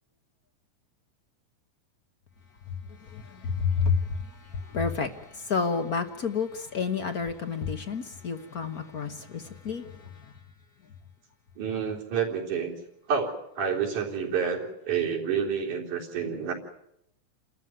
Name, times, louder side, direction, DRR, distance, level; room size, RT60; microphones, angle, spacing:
voice 1, 2.9-10.3, left 5 dB, 55° left, 8 dB, 1.0 m, -30 dB
voice 2, 11.6-12.7 13.1-16.5, right 6 dB, 85° right, -1 dB, 5.1 m, -29 dB
29.5 x 13.5 x 9.5 m, 0.81 s
omnidirectional pair, 3.4 m